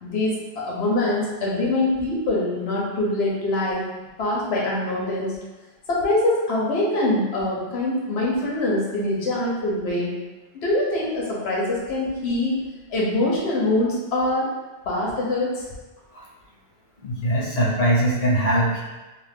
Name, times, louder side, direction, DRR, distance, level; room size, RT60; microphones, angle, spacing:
voice 1, 0.0-3.8 4.2-5.3 5.9-10.1 10.6-12.6 12.9-14.5 14.9-15.6, left 1 dB, 75° left, -5 dB, 1.0 m, -24 dB
voice 2, 17.0-18.8, right 1 dB, 40° left, -7 dB, 0.8 m, -21 dB
2.5 x 2.4 x 3.3 m, 1.2 s
omnidirectional pair, 1.1 m